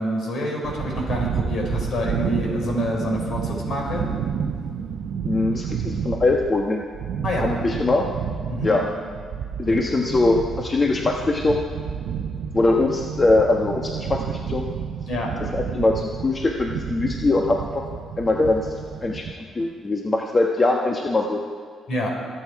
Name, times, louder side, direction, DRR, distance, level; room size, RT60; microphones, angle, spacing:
voice 1, 0.0-4.1 7.2-7.5 8.5-8.7 9.7-9.8 15.1-15.3 21.9-22.1, equal, 60° left, 0 dB, 4.4 m, -26 dB
sound 1, 0.6-19.3, right 7 dB, 75° right, 0.9 m, -30 dB
voice 2, 5.2-6.8 7.4-8.0 8.6-8.8 9.6-11.6 12.5-14.7 15.5-17.6 18.2-18.7 19.0-19.2 19.5-21.4, left 2 dB, 30° left, 0 dB, 1.2 m, -21 dB
24.0 x 8.8 x 4.8 m, 2.1 s
cardioid pair, 90°, 0 cm